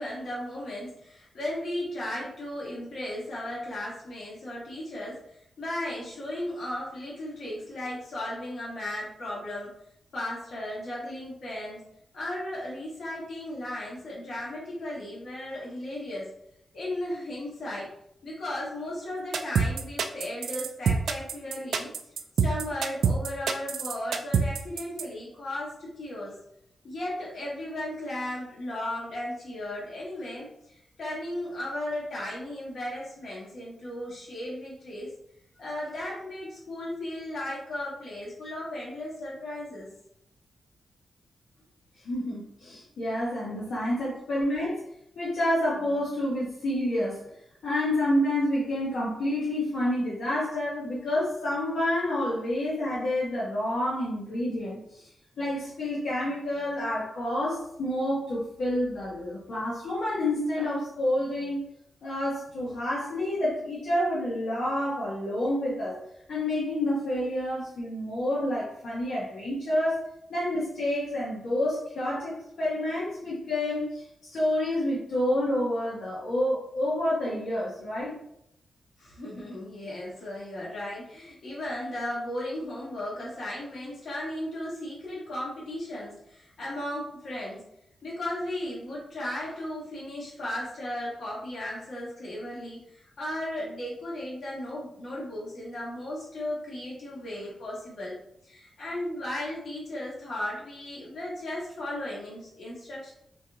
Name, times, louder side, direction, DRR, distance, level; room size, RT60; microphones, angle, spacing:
voice 1, 0.0-9.7 10.1-11.8 12.1-16.3 16.7-17.9 18.2-21.9 22.4-26.4 26.8-35.1 35.6-39.9 79.0-87.6 88.0-98.2 98.4-103.1, left 1 dB, 55° left, -5 dB, 1.5 m, -35 dB
sound 1, 19.3-25.0, right 6 dB, 85° right, 0.3 m, -25 dB
voice 2, 42.0-44.8 45.2-47.2 47.6-55.0 55.4-61.6 62.0-66.0 66.3-70.0 70.3-74.0 74.3-78.1, left 1 dB, 75° left, -7 dB, 1.1 m, -28 dB
4.5 x 2.5 x 2.9 m, 0.76 s
wide cardioid pair, 170°, 0 cm